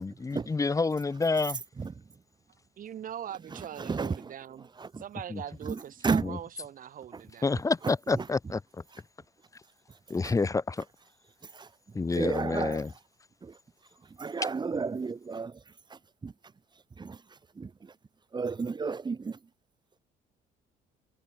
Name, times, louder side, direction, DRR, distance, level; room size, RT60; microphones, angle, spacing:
voice 1, 0.0-1.6 5.3-5.4 7.4-8.6 10.1-10.8 11.9-12.9, left 3 dB, 20° left, 1.3 m, -28 dB
voice 2, 2.8-4.7 5.0-7.5, right 10 dB, 55° right, 4.4 m, -41 dB
voice 3, 3.5-5.0 5.6-6.3 7.1-7.2 8.1-8.3 8.9-9.0 9.9-10.0 10.2-10.3 11.4-11.7 12.1-12.8 13.4-13.6 14.0-16.3 17.0-17.9 18.3-19.4, right 4 dB, 25° right, 3.5 m, -34 dB
cardioid pair, 110°, 17 cm